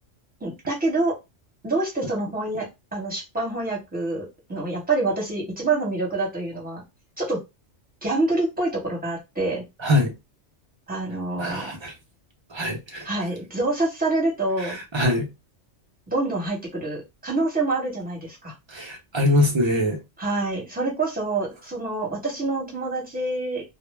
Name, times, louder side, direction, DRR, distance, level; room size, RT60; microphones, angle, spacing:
voice 1, 0.4-1.1 1.6-6.8 7.2-7.4 8.0-9.6 10.9-11.7 13.0-14.8 16.1-18.5 20.2-23.6, right 2 dB, 10° right, 0.9 m, -26 dB
voice 2, 9.8-10.1 11.4-11.9 12.5-13.1 14.6-15.3 18.7-20.0, left 1 dB, 40° right, 0.4 m, -23 dB
2.0 x 2.0 x 3.1 m
omnidirectional pair, 1.2 m